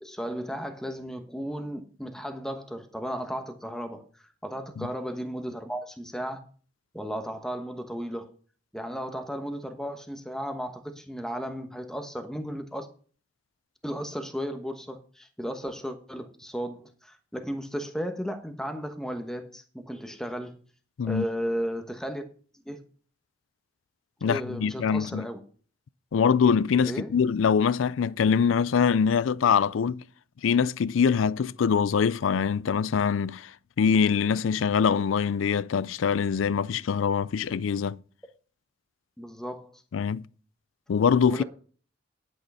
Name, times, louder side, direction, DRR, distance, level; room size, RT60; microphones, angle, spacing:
voice 1, 0.0-6.4 6.9-8.3 8.7-12.9 13.8-20.6 21.0-22.2 22.6-22.8 24.2-25.4 26.8-27.1 39.2-39.8 41.3-41.4, equal, 5° left, 1.1 m, -35 dB
voice 2, 24.2-25.3 26.1-30.0 30.4-33.5 33.8-38.0 39.9-40.2 40.9-41.4, left 6 dB, 85° left, 0.4 m, -24 dB
11.0 x 6.4 x 5.5 m
head